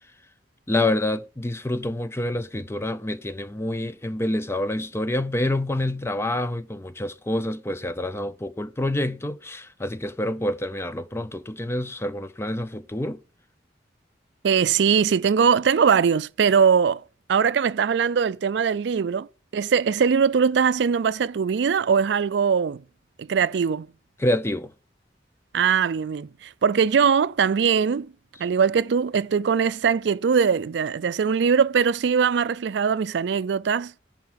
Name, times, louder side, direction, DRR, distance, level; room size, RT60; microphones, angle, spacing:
voice 1, 0.7-13.2 24.2-24.7, left 1 dB, 15° left, 0.5 m, -27 dB
voice 2, 14.4-17.0 17.3-19.3 19.5-22.8 23.2-23.9 25.5-28.1 28.4-33.9, right 6 dB, 70° right, 0.4 m, -21 dB
10.5 x 4.4 x 7.4 m
head